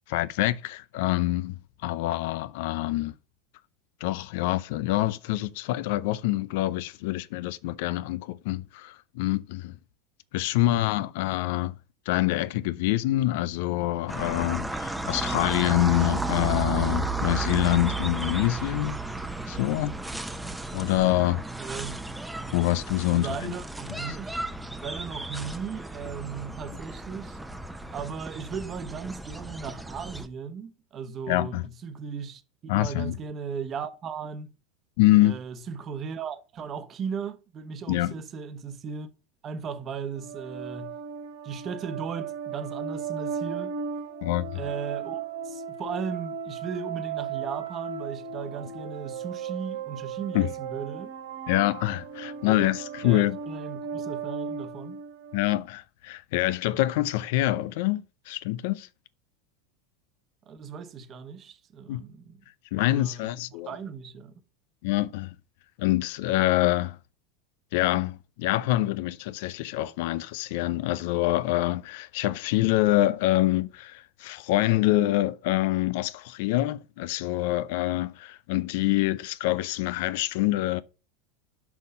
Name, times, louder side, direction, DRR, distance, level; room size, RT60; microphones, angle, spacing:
voice 1, 0.1-3.1 4.0-9.8 10.3-11.7 12.1-19.9 20.7-21.4 22.5-23.5 24.1-24.2 31.3-31.6 32.7-33.2 35.0-35.4 37.9-38.1 44.2-44.6 50.3-50.5 51.5-53.4 55.3-58.9 61.9-62.0 62.7-63.8 64.8-65.3 65.8-67.0 67.7-80.8, left 16 dB, 65° left, 0.5 m, -26 dB
sound 1, 14.1-30.3, right 3 dB, 5° right, 0.9 m, -33 dB
voice 2, 21.6-22.0 23.1-24.5 24.8-27.4 27.9-34.5 35.2-39.1 39.4-41.0 41.4-43.8 44.5-51.1 52.4-52.7 53.0-55.0 60.5-62.4 62.8-64.3, right 6 dB, 35° right, 1.2 m, -37 dB
sound 2, 40.2-55.6, right 7 dB, 75° right, 3.2 m, -36 dB
6.0 x 5.4 x 5.3 m
hypercardioid pair, 90°, 0 cm